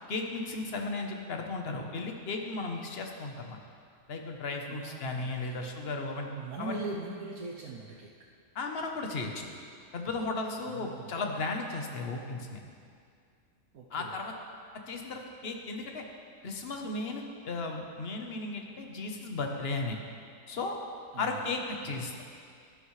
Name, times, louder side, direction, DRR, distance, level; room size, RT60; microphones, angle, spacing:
voice 1, 0.1-3.6 4.1-6.3 6.6-6.9 8.5-9.5 9.9-12.6 13.9-14.3 14.9-16.0 16.4-20.0 20.5-20.8 21.2-22.2, left 3 dB, 45° left, 2 dB, 1.2 m, -35 dB
voice 2, 4.6-5.7 6.2-8.1 10.7-11.1 13.7-14.2 21.1-21.5 21.8-22.1, right 3 dB, 75° right, -4 dB, 1.4 m, -41 dB
13.0 x 12.0 x 3.2 m, 2.3 s
omnidirectional pair, 1.6 m